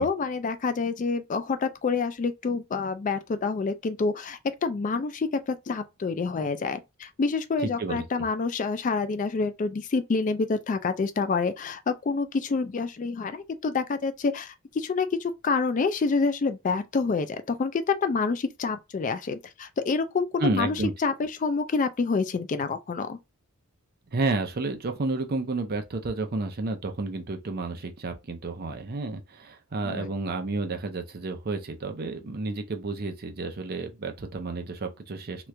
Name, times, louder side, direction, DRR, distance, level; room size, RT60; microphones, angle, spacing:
voice 1, 0.0-23.2 29.8-30.1, left 4 dB, 35° left, 0.3 m, -27 dB
voice 2, 7.6-8.0 20.4-20.9 24.1-35.5, right 3 dB, 45° right, 0.6 m, -31 dB
3.0 x 2.4 x 3.2 m
head